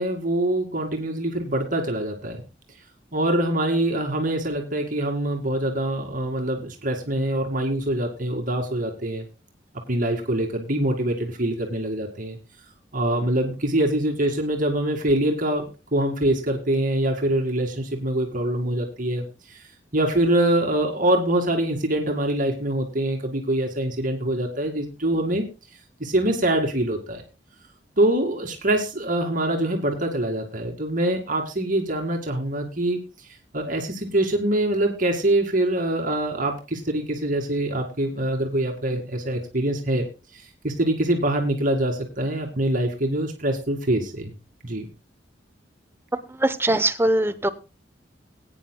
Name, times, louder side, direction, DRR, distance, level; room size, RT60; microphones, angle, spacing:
voice 1, 0.0-2.4 3.1-9.2 9.9-12.4 12.9-19.6 19.9-25.4 26.0-27.2 28.0-33.0 33.5-40.0 40.3-44.3 44.6-44.9, right 1 dB, 45° right, 2 dB, 2.2 m, -24 dB
voice 2, 46.1-47.5, right 1 dB, 15° right, 12 dB, 0.8 m, -22 dB
20.0 x 9.5 x 2.2 m, 0.29 s
head